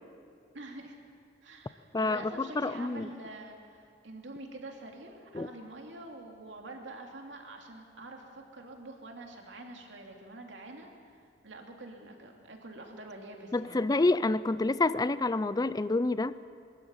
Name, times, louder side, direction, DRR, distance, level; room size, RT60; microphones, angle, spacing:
voice 1, 0.5-1.0 1.4-13.9, right 2 dB, 75° right, 2 dB, 2.6 m, -46 dB
voice 2, 1.9-3.1 5.3-5.5 13.5-16.3, left 2 dB, 20° left, 16 dB, 0.5 m, -28 dB
22.5 x 13.0 x 8.9 m, 2.3 s
head